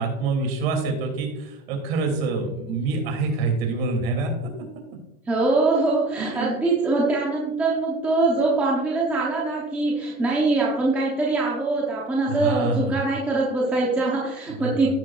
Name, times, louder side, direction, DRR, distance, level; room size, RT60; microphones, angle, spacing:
voice 1, 0.0-4.3 6.2-6.5 12.3-13.0 14.5-14.9, right 3 dB, 45° right, 3 dB, 2.6 m, -26 dB
voice 2, 5.3-14.9, right 3 dB, 5° right, -5 dB, 0.7 m, -23 dB
16.0 x 6.4 x 2.4 m, 0.94 s
supercardioid pair, 165°, 42 cm